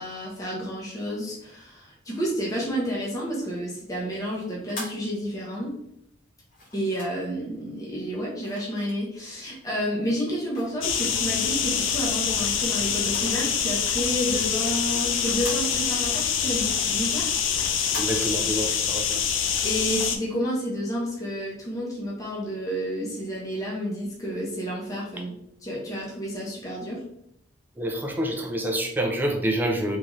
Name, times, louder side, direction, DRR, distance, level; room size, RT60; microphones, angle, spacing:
voice 1, 0.0-5.8 6.7-17.3 19.6-25.3 25.6-27.0, equal, 20° left, -4 dB, 0.9 m, -30 dB
sound 1, 4.2-5.7 6.5-7.4 8.4-9.5 9.9-11.3 11.8-13.5 13.7-13.8 14.2-16.1 16.5-18.1, left 1 dB, 45° left, 1.4 m, -42 dB
sound 2, 10.8-20.2, left 7 dB, 85° left, 0.5 m, -25 dB
voice 2, 18.0-19.2 27.8-30.0, right 1 dB, 10° right, 1 dB, 0.5 m, -27 dB
3.7 x 2.8 x 3.0 m, 0.75 s
head